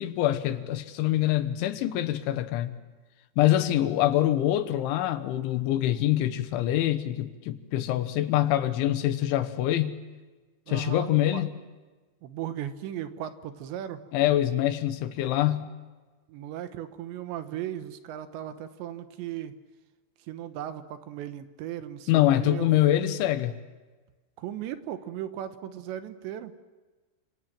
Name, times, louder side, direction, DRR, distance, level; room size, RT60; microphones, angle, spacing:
voice 1, 0.0-2.8 3.4-10.0 10.7-11.5 14.1-15.7 22.1-23.6, left 13 dB, 80° left, 3.6 m, -25 dB
voice 2, 10.7-11.4 12.2-14.0 16.3-19.5 20.3-22.7 24.4-26.5, right 11 dB, 75° right, 3.2 m, -37 dB
29.0 x 26.5 x 7.6 m
omnidirectional pair, 5.5 m